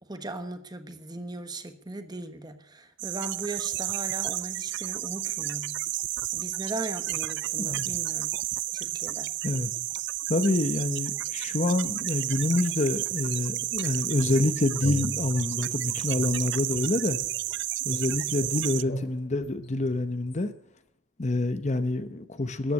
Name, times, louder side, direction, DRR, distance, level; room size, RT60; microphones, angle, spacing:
voice 1, 0.1-5.8 6.3-8.3 8.7-9.3, right 2 dB, 20° right, 1.3 m, -38 dB
sound 1, 3.0-18.8, right 16 dB, 60° right, 0.5 m, -32 dB
voice 2, 10.3-17.2 17.8-20.5 21.2-22.7, left 2 dB, 35° left, 0.8 m, -27 dB
sound 2, 14.2-15.7 16.2-17.6 17.9-20.4, equal, 55° left, 2.5 m, -39 dB
14.0 x 9.3 x 8.3 m
head